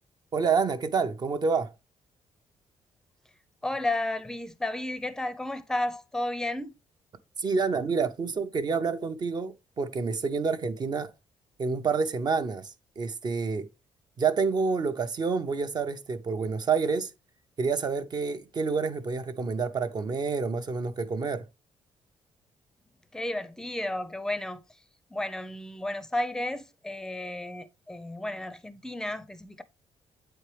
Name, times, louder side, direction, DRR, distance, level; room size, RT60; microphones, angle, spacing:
voice 1, 0.3-1.7 7.4-11.1 11.6-13.7 14.2-17.1 17.6-21.5, right 5 dB, 40° right, 0.7 m, -28 dB
voice 2, 3.6-6.7 23.1-24.6 25.1-29.6, left 1 dB, 5° left, 0.6 m, -32 dB
8.4 x 4.4 x 3.3 m
cardioid pair, 135°, 11 cm